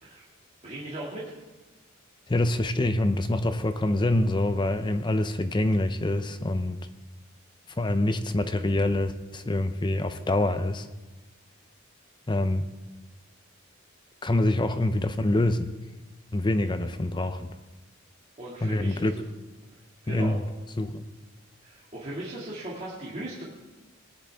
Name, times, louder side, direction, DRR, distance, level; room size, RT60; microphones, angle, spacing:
voice 1, 0.6-1.2 18.4-19.1 20.0-20.3 21.6-23.4, right 1 dB, 35° right, -7 dB, 2.3 m, -37 dB
voice 2, 2.3-6.9 7.8-10.9 12.3-12.7 14.2-15.7 16.3-17.5 18.6-19.2 20.1-20.4 20.8-21.0, left 1 dB, 20° left, 10 dB, 0.6 m, -25 dB
20.0 x 10.0 x 3.6 m, 1.2 s
head